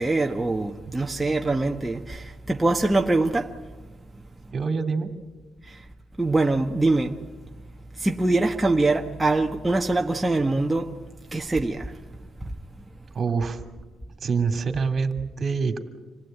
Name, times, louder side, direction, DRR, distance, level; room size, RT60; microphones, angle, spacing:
voice 1, 0.0-3.5 5.7-5.8 6.2-7.1 8.0-10.9 11.3-11.9, right 2 dB, 10° right, 1.2 m, -23 dB
voice 2, 4.5-5.1 13.1-13.6 14.2-15.8, right 5 dB, 45° right, 2.7 m, -25 dB
27.5 x 18.0 x 9.1 m
cardioid pair, 90°, 0 cm